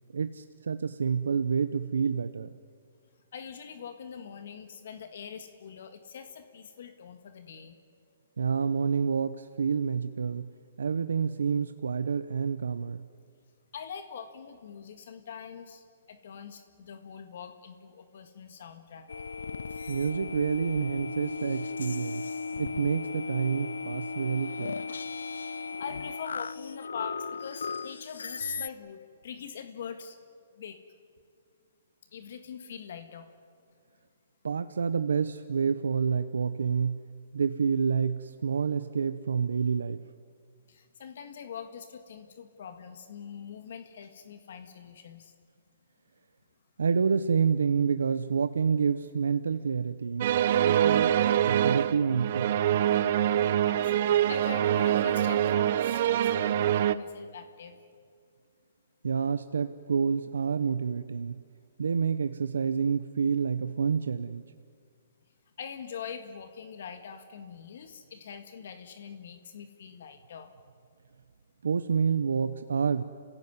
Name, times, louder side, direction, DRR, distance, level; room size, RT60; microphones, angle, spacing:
voice 1, 0.1-2.5 8.4-10.5 10.8-13.0 19.9-22.3 22.6-24.7 34.4-37.0 37.3-40.0 46.8-50.3 50.6-51.1 51.5-52.5 59.0-61.4 61.8-64.4 71.6-73.0, right 6 dB, 90° right, 11 dB, 0.8 m, -28 dB
voice 2, 3.3-7.8 13.7-19.1 24.9-25.0 25.8-30.2 30.6-30.8 32.1-33.3 40.7-45.3 53.6-53.9 54.3-57.8 65.6-70.5, left 7 dB, 65° left, 8 dB, 1.8 m, -43 dB
sound 1, 19.1-28.7, left 4 dB, 90° left, 0.6 m, -36 dB
sound 2, 50.2-57.0, right 11 dB, 50° right, 0.8 m, -25 dB
28.0 x 16.5 x 9.7 m, 2.2 s
hypercardioid pair, 150°, 0 cm